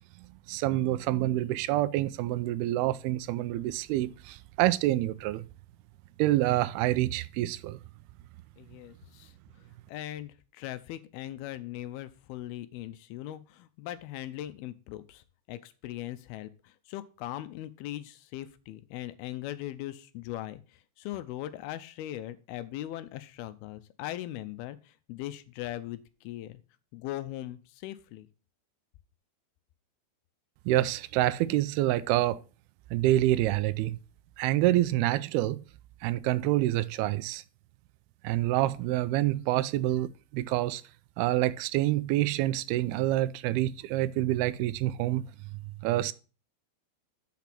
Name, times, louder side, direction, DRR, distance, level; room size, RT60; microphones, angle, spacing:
voice 1, 0.2-5.4 6.2-7.8 30.7-32.4 32.9-34.0 34.4-35.6 36.0-37.4 38.2-40.8 41.2-45.2 45.8-46.1, right 15 dB, 85° right, 2.5 m, -27 dB
voice 2, 8.6-9.3 9.9-15.2 15.5-20.6 21.0-24.8 25.1-26.6 26.9-28.3, left 14 dB, 85° left, 2.5 m, -39 dB
6.8 x 5.9 x 5.9 m
omnidirectional pair, 4.5 m